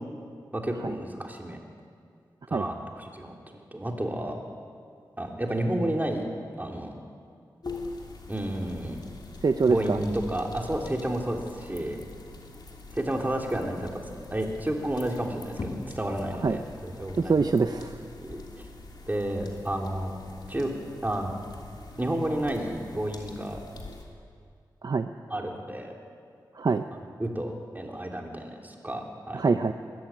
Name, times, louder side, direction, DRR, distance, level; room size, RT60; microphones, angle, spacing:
voice 1, 0.5-1.6 2.5-4.4 5.2-6.3 6.5-6.9 8.3-9.0 9.7-12.0 12.9-14.0 14.3-17.4 18.2-18.5 19.1-20.1 20.5-20.7 21.0-21.3 22.0-23.6 25.3-25.9 26.9-29.4, right 1 dB, 20° right, 1 dB, 3.3 m, -31 dB
sound 1, 7.6-24.1, left 3 dB, 60° left, 3.1 m, -43 dB
voice 2, 9.4-10.0 16.4-16.6 17.3-18.0 24.8-25.1 26.6-26.8 29.3-29.7, right 4 dB, 55° right, 8 dB, 0.7 m, -24 dB
22.0 x 13.5 x 9.0 m, 2.2 s
cardioid pair, 60°, 8 cm